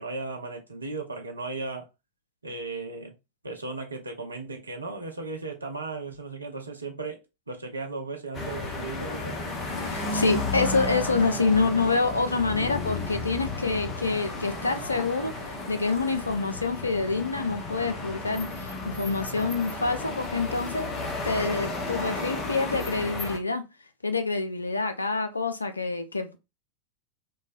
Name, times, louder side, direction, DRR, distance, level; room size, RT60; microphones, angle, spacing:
voice 1, 0.0-1.9 2.4-3.1 3.4-9.4 17.9-18.2, right 3 dB, 80° right, 0.6 m, -36 dB
sound 1, 8.3-23.4, left 2 dB, 25° left, 0.7 m, -33 dB
voice 2, 9.8-15.3 15.7-20.9 21.2-23.6 24.0-26.4, left 3 dB, 80° left, 0.4 m, -27 dB
3.1 x 2.2 x 2.5 m
figure-of-eight pair, 90°, 0 cm